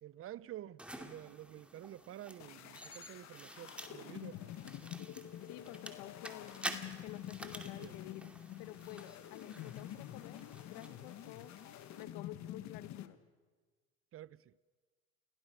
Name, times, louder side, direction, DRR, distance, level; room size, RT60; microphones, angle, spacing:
voice 1, 0.0-4.5 7.8-7.9 14.1-14.5, right 13 dB, 40° right, 0.7 m, -50 dB
sound 1, 0.8-12.0, right 1 dB, 5° right, 2.4 m, -50 dB
sound 2, 2.4-13.1, left 12 dB, 55° left, 1.7 m, -48 dB
voice 2, 5.4-6.5 7.0-8.3 8.6-10.4 10.7-11.6 12.0-13.2, left 15 dB, 70° left, 1.5 m, -50 dB
29.5 x 17.5 x 6.4 m
hypercardioid pair, 85°, 34 cm